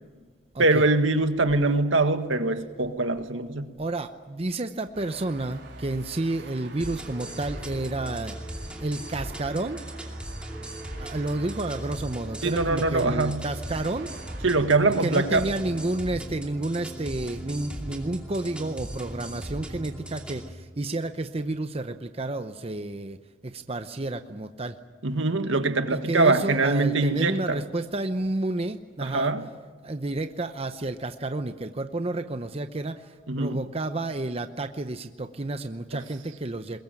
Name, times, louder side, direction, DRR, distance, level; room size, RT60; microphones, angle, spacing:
voice 1, 0.6-3.8 12.4-13.5 14.4-15.5 25.0-27.6 29.0-29.5 33.3-33.7 35.9-36.0, right 3 dB, 80° right, 7 dB, 1.7 m, -23 dB
voice 2, 3.8-8.4 8.8-9.8 11.0-14.1 15.0-23.2 23.4-24.8 25.9-29.3 29.8-36.8, right 2 dB, 30° right, 8 dB, 0.8 m, -30 dB
sound 1, 4.9-16.0, right 3 dB, 60° right, 4.0 m, -48 dB
sound 2, 6.8-20.5, right 1 dB, 5° right, 2.6 m, -38 dB
22.5 x 21.5 x 9.1 m, 1.4 s
head